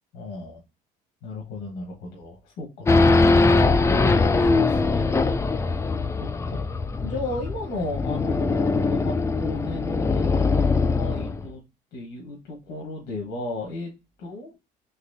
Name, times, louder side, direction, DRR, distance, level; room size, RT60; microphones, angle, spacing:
voice 1, 0.1-0.6 1.2-5.3 5.7-11.6 11.9-13.9 14.2-14.5, left 2 dB, 85° left, -1 dB, 1.2 m, -35 dB
Race car auto racing / Idling / Accelerating revving vroom, 2.8-11.5, left 3 dB, 15° left, 0.3 m, -21 dB
4.0 x 2.8 x 2.7 m, 0.25 s
cardioid pair, 110°, 17 cm